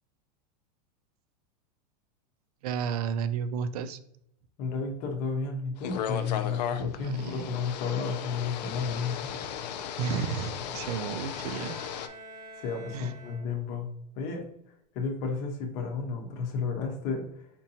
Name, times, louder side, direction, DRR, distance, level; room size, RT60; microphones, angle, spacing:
voice 1, 2.6-4.0 7.0-7.5 10.0-11.8 12.9-13.1, right 7 dB, 65° right, 13 dB, 0.4 m, -32 dB
voice 2, 4.6-9.3 12.6-13.9 14.2-14.4 14.9-17.2, left 5 dB, 35° left, 2 dB, 0.7 m, -32 dB
sound 1, 5.8-12.1, left 8 dB, 85° left, 0.4 m, -36 dB
sound 2, 10.6-13.9, right 1 dB, 80° right, 1.2 m, -49 dB
4.4 x 2.6 x 2.7 m, 0.73 s
supercardioid pair, 160°, 21 cm